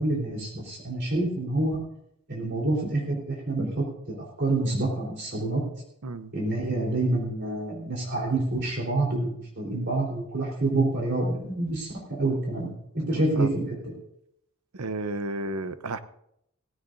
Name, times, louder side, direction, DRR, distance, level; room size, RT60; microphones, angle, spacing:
voice 1, 0.0-1.8 2.3-5.6 6.3-14.0, right 2 dB, 50° right, -2 dB, 4.0 m, -27 dB
voice 2, 6.0-6.3 13.0-13.5 14.7-16.0, right 2 dB, 80° right, 12 dB, 0.8 m, -33 dB
17.5 x 16.0 x 2.7 m, 0.75 s
head